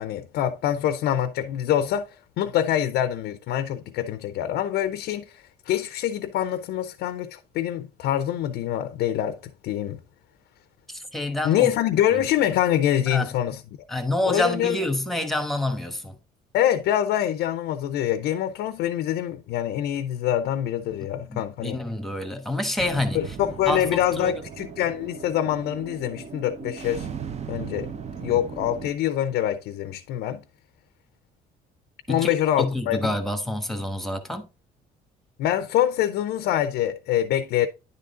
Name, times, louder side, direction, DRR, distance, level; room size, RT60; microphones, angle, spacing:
voice 1, 0.0-9.4 9.6-10.0 11.4-13.6 14.3-14.8 16.5-21.8 23.1-27.1 27.5-27.9 28.2-30.4 32.1-33.1 35.4-37.7, left 11 dB, 75° left, 0.5 m, -25 dB
voice 2, 10.9-11.7 12.1-12.2 13.1-13.3 13.9-16.2 21.3-23.4 23.7-24.4 32.1-34.5, left 1 dB, ahead, 1.1 m, -28 dB
sound 1, 22.8-28.9, right 6 dB, 40° right, 0.7 m, -37 dB
10.0 x 3.7 x 3.7 m
cardioid pair, 110°, 17 cm